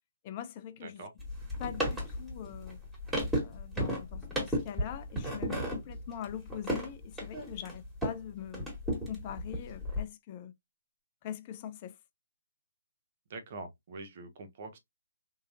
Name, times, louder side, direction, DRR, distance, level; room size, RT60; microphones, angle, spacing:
voice 1, 0.2-1.0 1.6-2.8 3.4-8.7 9.1-10.5 11.2-12.0, left 9 dB, 35° left, 0.4 m, -42 dB
voice 2, 0.8-1.1 13.3-14.8, right 3 dB, 45° right, 0.9 m, -44 dB
sound 1, 1.2-8.2 8.5-10.0, equal, 5° right, 1.7 m, -34 dB
3.7 x 2.8 x 2.5 m
figure-of-eight pair, 140°, 0 cm